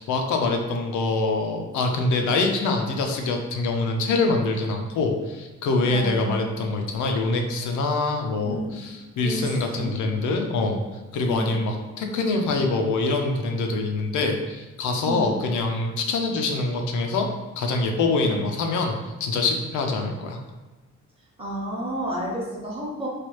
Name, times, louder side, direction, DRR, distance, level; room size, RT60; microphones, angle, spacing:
voice 1, 0.0-10.8 11.1-17.3 17.6-20.4, left 3 dB, 80° left, 3 dB, 0.6 m, -25 dB
voice 2, 5.9-6.6 8.4-8.8 9.2-10.0 11.3-11.6 15.1-15.3 18.2-18.4 21.4-23.1, right 1 dB, 20° right, -4 dB, 0.8 m, -31 dB
3.2 x 2.3 x 3.1 m, 1.1 s
cardioid pair, 135°, 29 cm